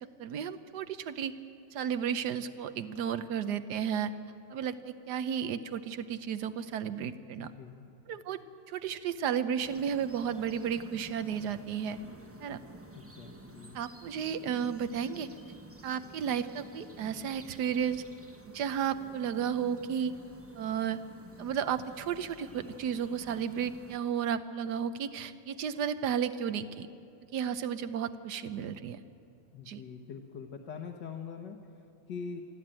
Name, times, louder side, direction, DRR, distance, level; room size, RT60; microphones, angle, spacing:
voice 1, 0.2-1.3 1.7-4.1 4.5-7.5 8.1-8.4 8.7-12.0 12.4-12.6 13.7-15.3 15.8-18.0 18.5-20.1 20.5-21.0 21.4-26.9 27.3-29.0 29.7-29.8, right 8 dB, 70° right, 12 dB, 1.3 m, -33 dB
voice 2, 7.4-7.8 12.9-13.8 29.5-32.4, left 6 dB, 70° left, 1 dB, 1.7 m, -43 dB
sound 1, 9.6-24.0, right 1 dB, 20° right, 0.3 m, -51 dB
24.0 x 14.0 x 8.9 m, 2.6 s
omnidirectional pair, 2.0 m